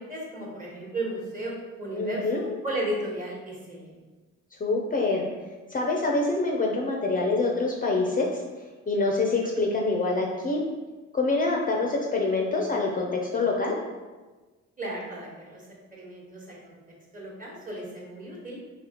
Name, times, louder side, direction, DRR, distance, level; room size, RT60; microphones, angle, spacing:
voice 1, 0.0-1.5 1.8-3.9 14.8-15.6 15.9-16.8 17.1-18.6, right 1 dB, 25° right, -3 dB, 1.2 m, -34 dB
voice 2, 2.0-2.4 4.6-5.3 5.7-8.4 8.9-10.7 11.1-13.8, left 3 dB, 30° left, 0 dB, 0.5 m, -25 dB
4.1 x 2.9 x 2.9 m, 1.3 s
cardioid pair, 90°, 30 cm